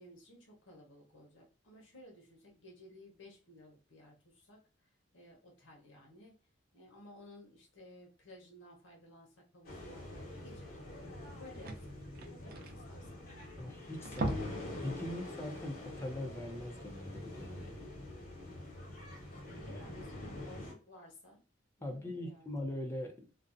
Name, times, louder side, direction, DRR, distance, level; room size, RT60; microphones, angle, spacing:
voice 1, 0.0-6.4 6.7-11.9 12.2-13.3 19.3-21.4 21.8-22.5, left 1 dB, 75° left, -2 dB, 0.8 m, -56 dB
sound 1, 9.6-20.7, left 1 dB, 50° left, 1.0 m, -46 dB
sound 2, 11.0-11.1 11.3-13.6 13.9-14.7 15.0-15.2 15.6-15.7, right 2 dB, 50° right, 0.4 m, -39 dB
voice 2, 13.6-17.8 19.6-19.8 20.2-20.6 21.8-23.1, left 1 dB, 15° left, 1 dB, 0.5 m, -41 dB
2.5 x 2.1 x 2.5 m, 0.36 s
head